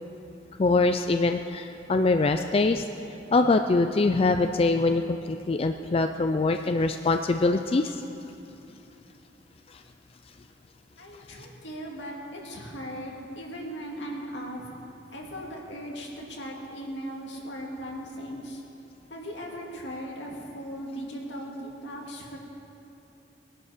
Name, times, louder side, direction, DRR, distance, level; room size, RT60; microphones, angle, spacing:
voice 1, 0.6-2.8 3.3-8.0, left 3 dB, 30° left, 7 dB, 0.4 m, -23 dB
voice 2, 11.0-14.7 15.1-18.6 19.1-22.4, equal, 80° left, -1 dB, 2.5 m, -38 dB
20.5 x 11.0 x 5.0 m, 2.8 s
head